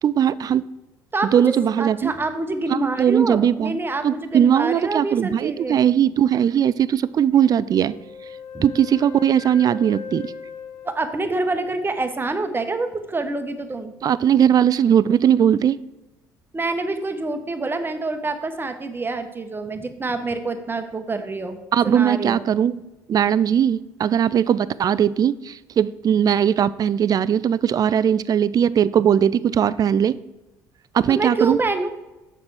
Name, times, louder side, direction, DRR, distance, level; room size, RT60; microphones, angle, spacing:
voice 1, 0.0-0.6 1.3-2.1 2.7-3.8 4.0-7.9 8.6-10.3 14.0-15.8 21.7-22.7 23.1-30.2 30.9-31.6, right 9 dB, 40° right, 18 dB, 0.4 m, -19 dB
voice 2, 1.1-5.8 8.5-8.7 10.8-13.9 16.5-21.6 21.8-22.5 31.1-31.9, right 3 dB, 20° right, 7 dB, 1.1 m, -26 dB
Wind instrument woodwind instrument, 7.7-11.9, left 6 dB, 60° left, 2.2 m, -39 dB
7.2 x 6.0 x 4.8 m, 1.0 s
hypercardioid pair, 55°, 10 cm